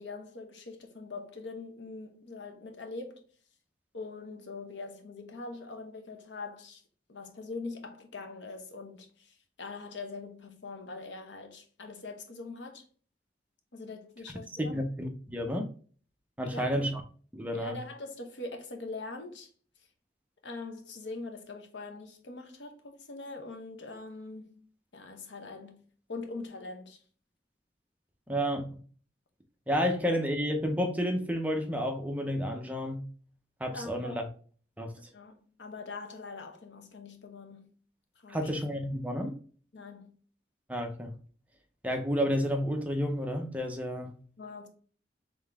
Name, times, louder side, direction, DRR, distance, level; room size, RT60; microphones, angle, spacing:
voice 1, 0.0-3.3 3.9-6.8 7.1-12.8 13.7-14.8 16.4-16.9 17.5-19.5 20.4-24.6 24.9-25.8 26.1-27.0 33.7-34.3 35.1-37.7 38.2-38.5 39.7-40.2 44.4-44.7, left 3 dB, 90° left, 0.9 m, -42 dB
voice 2, 14.6-15.7 16.4-17.0 17.3-17.8 28.3-28.8 29.7-33.0 33.6-34.2 34.8-34.9 38.3-39.4 40.7-41.1 41.8-44.1, equal, 10° right, 0.6 m, -31 dB
3.9 x 3.5 x 3.4 m
head